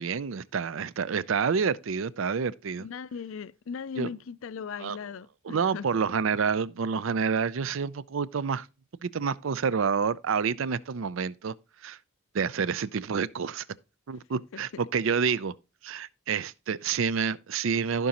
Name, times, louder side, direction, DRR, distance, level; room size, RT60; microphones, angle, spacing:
voice 1, 0.0-2.9 4.0-4.1 4.8-5.0 5.5-8.7 9.0-11.5 11.8-12.0 12.3-13.6 14.1-15.5 15.8-18.1, right 6 dB, 70° right, 0.5 m, -28 dB
voice 2, 2.8-5.9, left 6 dB, 70° left, 0.4 m, -38 dB
15.0 x 5.3 x 2.9 m
head